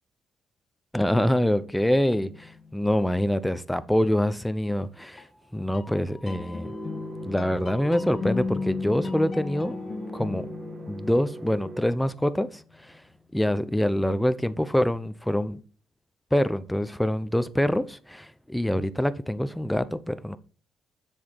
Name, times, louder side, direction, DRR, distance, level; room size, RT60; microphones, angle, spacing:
voice 1, 0.9-5.3 5.5-6.7 7.3-9.8 10.1-10.5 10.9-13.0 13.3-15.6 16.3-20.4, left 1 dB, 5° left, 0.7 m, -25 dB
sound 1, 2.1-3.3 5.2-12.8, left 4 dB, 40° left, 1.4 m, -36 dB
sound 2, 6.6-12.0, right 3 dB, 50° right, 1.5 m, -41 dB
7.5 x 6.4 x 4.0 m
cardioid pair, 90°, 0 cm